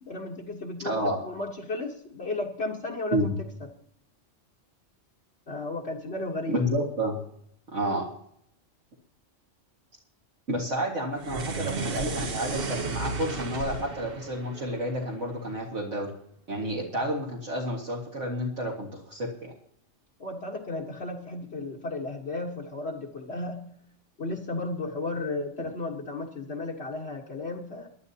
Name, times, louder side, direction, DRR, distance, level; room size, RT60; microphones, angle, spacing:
voice 1, 0.0-3.7 5.5-6.6 20.2-23.7 24.2-27.9, left 2 dB, 55° left, -2 dB, 1.6 m, -34 dB
voice 2, 0.8-1.2 3.1-3.3 6.5-7.2 7.7-8.1 10.5-16.1 16.5-19.5, equal, 65° right, -3 dB, 2.3 m, -30 dB
sound 1, 11.2-15.6, right 4 dB, 45° right, 1.3 m, -34 dB
24.5 x 11.5 x 2.9 m, 0.72 s
omnidirectional pair, 1.3 m